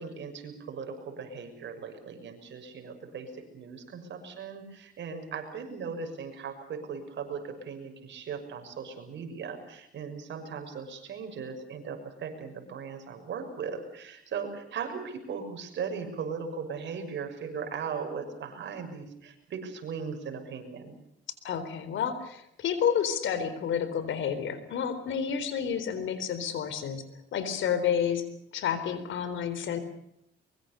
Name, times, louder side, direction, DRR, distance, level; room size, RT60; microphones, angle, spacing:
voice 1, 0.0-20.9, right 6 dB, 65° right, 5 dB, 6.5 m, -38 dB
voice 2, 21.4-27.0 27.3-28.2 28.5-29.8, left 8 dB, 75° left, 13 dB, 4.0 m, -30 dB
24.0 x 23.5 x 6.9 m, 0.76 s
cardioid pair, 90°, 20 cm